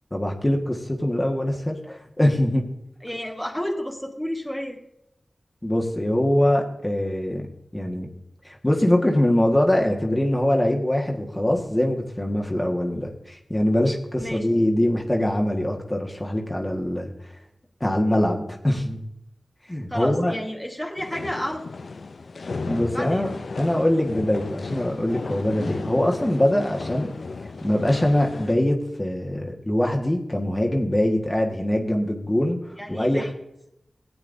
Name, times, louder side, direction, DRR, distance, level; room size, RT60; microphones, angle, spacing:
voice 1, 0.1-2.6 5.6-7.5 7.7-8.1 8.4-17.3 17.8-19.0 19.7-20.3 22.6-23.3 23.6-27.1 27.6-32.6 32.9-33.3, left 1 dB, 20° left, 0 dB, 1.5 m, -23 dB
voice 2, 3.0-4.8 14.2-14.5 19.9-21.7 22.9-23.3 32.8-33.3, equal, ahead, 0 dB, 1.4 m, -31 dB
sound 1, 21.0-28.5, left 4 dB, 80° left, 0.4 m, -34 dB
16.0 x 8.8 x 2.6 m, 0.83 s
cardioid pair, 45°, 0 cm